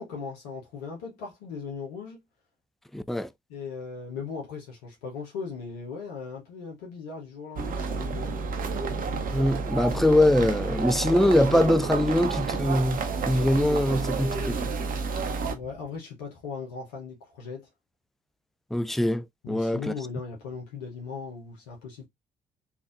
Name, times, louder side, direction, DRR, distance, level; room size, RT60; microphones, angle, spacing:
voice 1, 0.0-2.2 3.5-8.4 15.5-17.7 19.4-22.1, left 5 dB, 75° left, 0.9 m, -38 dB
voice 2, 2.9-3.3 9.3-14.7 18.7-19.9, left 1 dB, ahead, 0.3 m, -23 dB
sound 1, 7.6-15.5, right 4 dB, 45° right, 0.7 m, -30 dB
sound 2, 7.9-16.0, left 6 dB, 50° left, 1.3 m, -50 dB
3.5 x 2.5 x 2.4 m
figure-of-eight pair, 45°, 20 cm